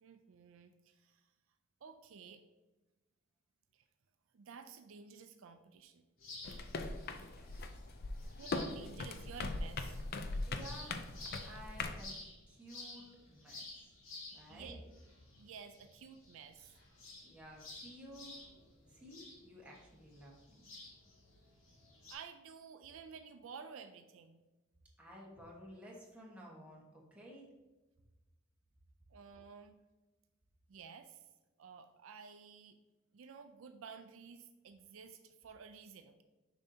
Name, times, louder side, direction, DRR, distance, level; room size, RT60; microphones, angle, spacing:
voice 1, 0.0-1.2 1.8-2.4 3.7-3.8 4.3-6.1 8.4-10.0 14.5-14.8 15.4-16.7 22.1-24.4 29.1-29.8 30.7-31.3 31.6-32.8 33.1-36.2, right 6 dB, 70° right, 8 dB, 0.4 m, -52 dB
sound 1, 6.2-22.1, left 2 dB, 70° left, 1.9 m, -53 dB
sound 2, 6.4-12.0, left 3 dB, 45° left, 0.5 m, -40 dB
voice 2, 7.1-7.5 8.1-8.4 10.5-13.7 14.3-14.8 17.2-18.4 18.9-20.7 25.0-26.8 27.1-27.5, equal, 5° right, -4 dB, 1.3 m, -54 dB
7.0 x 5.3 x 2.8 m, 1.1 s
head